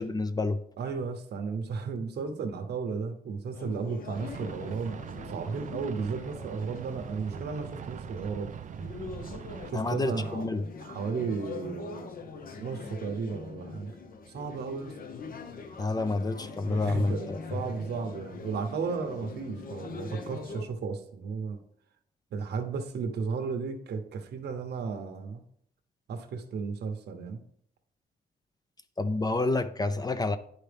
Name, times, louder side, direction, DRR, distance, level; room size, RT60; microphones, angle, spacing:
voice 1, 0.0-0.6 9.7-10.6 15.8-17.4 29.0-30.4, left 2 dB, 20° left, 0.5 m, -28 dB
voice 2, 0.8-5.0 5.3-8.5 9.7-10.5 10.8-12.3 12.6-13.9 14.3-14.9 16.6-21.6 22.3-25.4 26.1-27.4, right 5 dB, 75° right, 0.8 m, -34 dB
sound 1, 3.5-20.6, left 4 dB, 55° left, 0.9 m, -43 dB
sound 2, 4.1-9.7, right 8 dB, 45° right, 0.4 m, -42 dB
10.5 x 4.4 x 3.4 m
cardioid pair, 105°, 18 cm